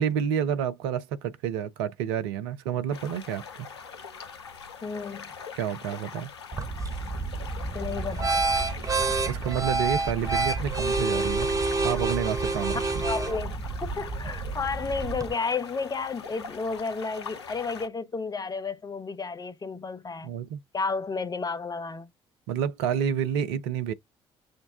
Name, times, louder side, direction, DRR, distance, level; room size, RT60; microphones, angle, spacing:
voice 1, 0.0-3.5 5.5-6.3 9.3-13.0 20.2-20.6 22.5-23.9, right 9 dB, 70° right, 0.6 m, -29 dB
sound 1, 2.9-17.9, left 6 dB, 80° left, 0.6 m, -42 dB
voice 2, 4.8-5.3 7.6-8.4 13.0-20.3 20.7-22.1, left 4 dB, 30° left, 1.0 m, -32 dB
sound 2, 6.5-15.3, right 3 dB, 25° right, 0.8 m, -28 dB
6.4 x 2.2 x 3.5 m
figure-of-eight pair, 50°, 14 cm